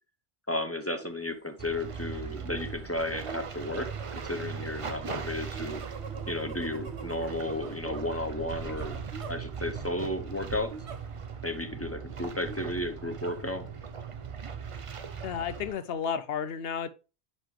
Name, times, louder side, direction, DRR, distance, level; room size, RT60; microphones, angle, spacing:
voice 1, 0.5-3.9 4.2-5.8 6.3-9.0 9.3-10.7 11.4-13.7, left 1 dB, 15° left, 0.7 m, -33 dB
sound 1, 1.0-1.3 1.7-10.0 10.7-11.4 11.8-11.9 12.5-13.9 14.5-15.9, right 5 dB, 85° right, 1.1 m, -46 dB
sound 2, 1.6-15.7, right 6 dB, 40° right, 0.5 m, -39 dB
voice 2, 15.2-16.9, left 7 dB, 65° left, 0.8 m, -32 dB
10.5 x 4.3 x 3.2 m
omnidirectional pair, 1.1 m